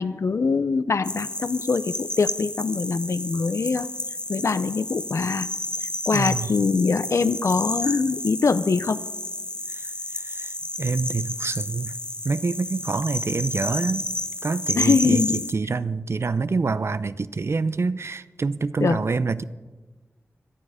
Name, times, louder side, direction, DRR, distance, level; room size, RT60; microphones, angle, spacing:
voice 1, 0.0-3.9 4.3-5.5 6.1-9.0 14.8-15.5 18.8-19.0, left 4 dB, 65° left, 14 dB, 0.6 m, -23 dB
sound 1, 1.0-15.5, left 1 dB, 15° left, 0.8 m, -31 dB
voice 2, 6.1-6.5 9.7-12.0 12.2-14.0 14.4-19.4, right 4 dB, 55° right, 15 dB, 0.6 m, -26 dB
17.5 x 12.0 x 5.0 m, 1.3 s
wide cardioid pair, 60°, 5 cm